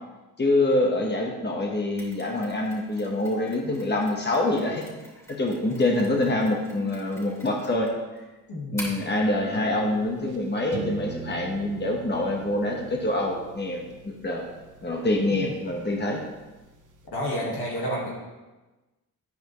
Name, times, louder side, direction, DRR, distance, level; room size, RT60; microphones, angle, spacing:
voice 1, 0.4-4.8 5.3-7.9 8.7-14.5 14.8-16.2, left 1 dB, 30° left, 0 dB, 1.2 m, -25 dB
Mechanisms, 2.0-9.1, equal, 5° left, 2.5 m, -46 dB
voice 2, 5.7-6.1 8.5-9.0 17.1-18.1, equal, 80° left, -3 dB, 1.9 m, -31 dB
sound 1, 9.0-17.1, right 5 dB, 55° right, 0.9 m, -42 dB
10.5 x 5.0 x 3.1 m, 1.1 s
cardioid pair, 65°, 38 cm